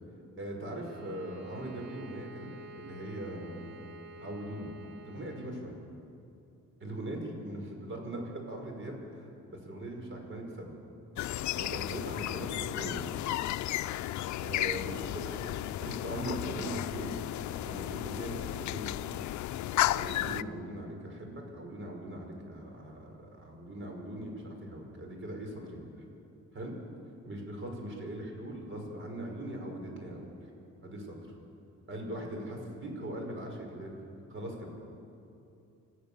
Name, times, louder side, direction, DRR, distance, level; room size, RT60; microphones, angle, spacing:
voice 1, 0.4-2.5 2.8-3.8 4.2-4.7 5.0-5.8 6.8-10.8 11.5-13.0 14.4-15.5 15.8-17.2 17.6-19.2 19.9-25.9 26.5-26.7 27.2-30.3 30.8-31.3 31.9-33.9 34.3-34.7, right 1 dB, 40° right, 2 dB, 5.8 m, -40 dB
Bowed string instrument, 0.7-5.6, right 2 dB, 65° right, 1.8 m, -50 dB
sound 1, 11.2-20.4, left 14 dB, 70° left, 0.6 m, -34 dB
29.0 x 14.5 x 7.1 m, 2.7 s
cardioid pair, 90°, 30 cm